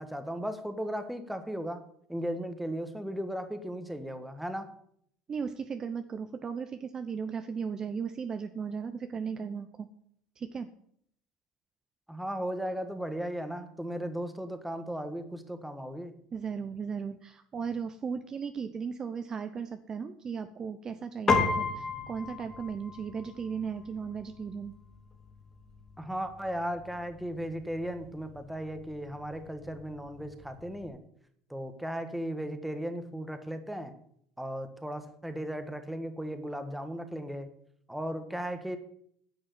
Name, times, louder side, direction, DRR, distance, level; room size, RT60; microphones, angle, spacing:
voice 1, 0.0-4.7 12.1-16.1 26.0-31.0 31.5-33.9 34.4-37.5 37.9-38.8, equal, 5° right, 8 dB, 1.5 m, -36 dB
voice 2, 5.3-9.9 10.4-10.7 16.3-24.7, right 6 dB, 30° right, 9 dB, 0.7 m, -36 dB
Piano, 21.3-30.9, left 4 dB, 25° left, 2.8 m, -36 dB
10.0 x 6.2 x 8.5 m, 0.68 s
supercardioid pair, 110°, 2 cm